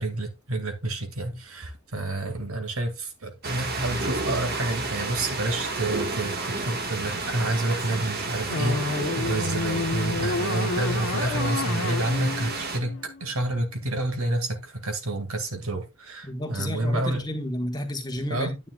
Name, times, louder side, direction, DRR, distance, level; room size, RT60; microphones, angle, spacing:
voice 1, 0.0-17.3 18.3-18.5, right 2 dB, 80° right, 2.0 m, -29 dB
sound 1, 3.4-12.8, right 3 dB, 50° right, 1.5 m, -31 dB
sound 2, 8.5-13.6, left 3 dB, 85° left, 1.0 m, -30 dB
voice 2, 16.2-18.7, left 1 dB, 20° left, 1.4 m, -31 dB
9.7 x 9.0 x 2.3 m
head